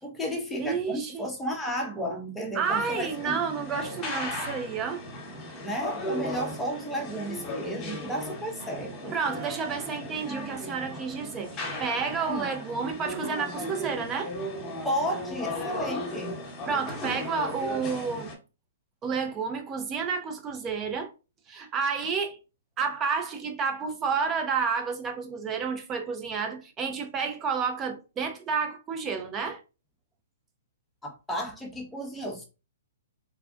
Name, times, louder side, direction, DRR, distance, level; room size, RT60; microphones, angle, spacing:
voice 1, 0.0-3.4 5.6-9.2 12.3-12.5 14.8-16.4 31.0-32.5, equal, 5° left, 0.9 m, -33 dB
voice 2, 0.6-1.3 2.5-5.0 9.1-14.3 16.7-18.3 19.0-21.1 21.5-22.4 22.8-29.6, right 5 dB, 20° right, 0.7 m, -30 dB
sound 1, 2.6-18.3, left 1 dB, 25° left, 1.3 m, -36 dB
3.5 x 2.4 x 2.3 m
hypercardioid pair, 135°, 0 cm